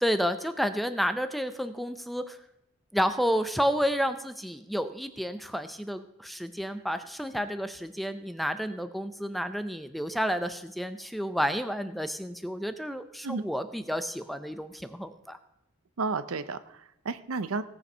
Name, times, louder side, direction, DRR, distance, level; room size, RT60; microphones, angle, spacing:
voice 1, 0.0-2.4 2.9-15.4, equal, ahead, 10 dB, 0.5 m, -30 dB
voice 2, 16.0-17.6, right 4 dB, 80° right, 14 dB, 0.6 m, -32 dB
17.0 x 6.9 x 5.5 m, 0.84 s
head